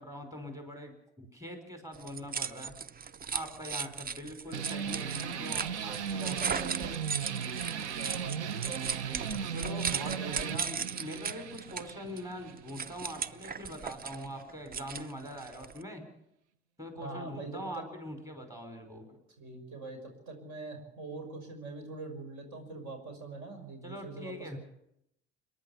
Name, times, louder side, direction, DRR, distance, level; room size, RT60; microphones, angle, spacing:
voice 1, 0.0-2.7 3.3-6.4 9.5-16.1 16.8-19.2 23.8-24.6, equal, 10° right, 5 dB, 5.5 m, -43 dB
sound 1, 1.9-15.8, right 6 dB, 25° right, 0.7 m, -37 dB
sound 2, 4.5-13.6, right 7 dB, 85° right, 0.9 m, -37 dB
voice 2, 6.2-6.9 8.0-9.4 10.0-10.6 16.9-17.8 19.4-24.6, right 3 dB, 60° right, 4 dB, 6.1 m, -43 dB
29.0 x 11.5 x 8.3 m, 0.79 s
hypercardioid pair, 60°, 33 cm